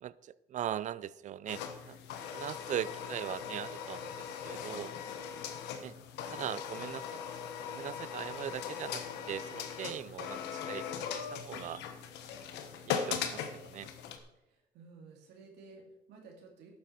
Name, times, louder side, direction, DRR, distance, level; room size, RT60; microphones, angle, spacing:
voice 1, 0.0-4.9 5.8-5.9 6.3-7.2 7.6-11.8 12.8-13.9, right 11 dB, 45° right, 0.4 m, -40 dB
sound 1, 1.5-14.2, left 7 dB, 90° left, 1.3 m, -40 dB
voice 2, 14.5-16.7, right 4 dB, 85° right, 2.6 m, -54 dB
12.0 x 9.1 x 4.5 m
cardioid pair, 110°, 17 cm